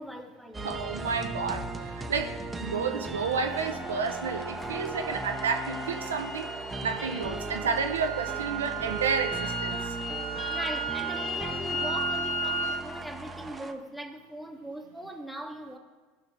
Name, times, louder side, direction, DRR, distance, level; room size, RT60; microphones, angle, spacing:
voice 1, 0.0-0.7 10.5-15.8, right 1 dB, ahead, 4 dB, 1.3 m, -40 dB
sound 1, 0.5-13.7, right 3 dB, 20° right, 0.8 m, -37 dB
voice 2, 0.6-6.5 6.8-9.9, right 5 dB, 85° right, 5 dB, 0.6 m, -31 dB
sound 2, 3.2-12.9, right 2 dB, 60° left, 1.3 m, -35 dB
16.5 x 5.8 x 3.3 m, 1.4 s
hypercardioid pair, 80°, 0 cm